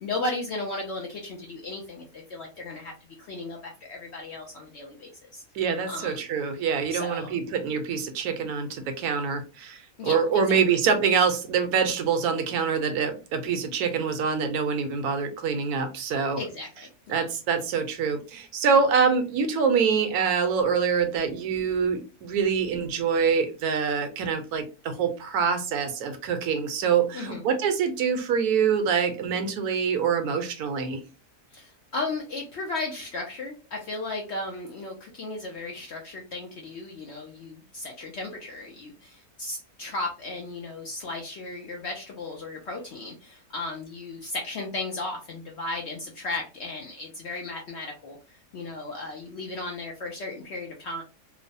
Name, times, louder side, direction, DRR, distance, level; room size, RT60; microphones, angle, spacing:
voice 1, 0.0-2.9 3.2-5.4 5.9-6.2 6.9-7.4 10.0-10.6 16.4-17.2 27.1-27.4 31.5-48.2 48.5-51.0, left 2 dB, 65° left, 1 dB, 0.6 m, -35 dB
voice 2, 5.5-16.4 17.1-31.0, right 6 dB, 80° right, 7 dB, 1.1 m, -25 dB
3.0 x 2.0 x 2.6 m, 0.31 s
omnidirectional pair, 1.6 m